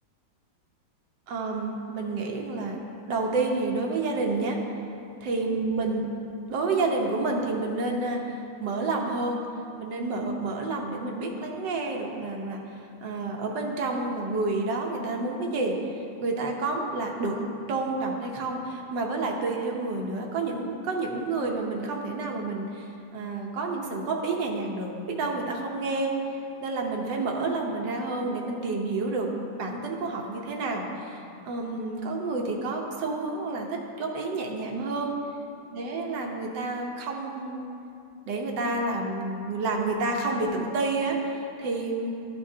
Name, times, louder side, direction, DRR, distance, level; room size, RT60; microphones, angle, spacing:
voice 1, 1.3-2.8 3.1-4.6 5.2-6.1 6.5-9.4 9.8-12.6 13.0-15.7 16.2-17.4 17.7-26.1 26.6-29.3 29.6-35.1 35.7-37.6 38.3-42.1, right 3 dB, 70° right, 0 dB, 1.4 m, -29 dB
12.5 x 6.2 x 2.7 m, 2.6 s
omnidirectional pair, 2.1 m